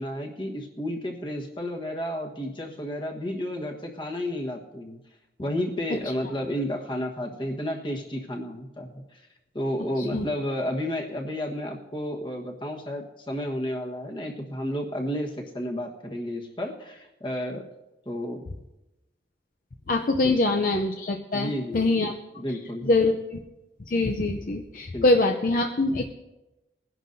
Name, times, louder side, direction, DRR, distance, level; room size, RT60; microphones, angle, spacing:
voice 1, 0.0-5.0 5.4-9.2 9.5-17.6 18.0-18.4 20.2-20.6 21.3-22.1 22.4-22.9 24.9-25.1, left 1 dB, 25° left, 2 dB, 1.3 m, -32 dB
voice 2, 19.9-22.1 22.8-23.4 23.9-26.1, left 2 dB, 50° left, 3 dB, 0.6 m, -24 dB
21.0 x 11.0 x 2.7 m, 0.98 s
head